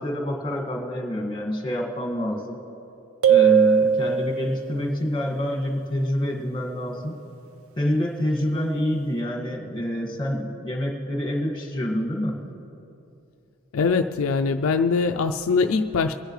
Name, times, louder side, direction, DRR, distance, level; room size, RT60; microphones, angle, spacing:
voice 1, 0.0-2.6 3.3-7.2 7.8-12.4, left 1 dB, 25° left, 0 dB, 1.9 m, -27 dB
sound 1, 3.2-4.7, right 8 dB, 90° right, 0.8 m, -19 dB
voice 2, 13.7-16.1, left 4 dB, 70° left, 6 dB, 0.4 m, -22 dB
24.5 x 10.0 x 3.2 m, 2.7 s
head